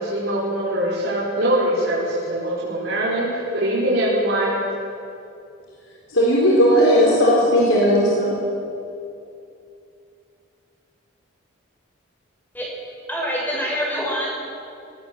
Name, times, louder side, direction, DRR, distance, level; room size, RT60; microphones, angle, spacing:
voice 1, 0.0-4.6, right 1 dB, 85° right, -8 dB, 4.8 m, -22 dB
voice 2, 6.1-8.3, equal, 85° left, -4 dB, 4.1 m, -16 dB
voice 3, 13.1-14.3, equal, 10° left, -3 dB, 5.9 m, -25 dB
20.5 x 19.0 x 7.5 m, 2.6 s
head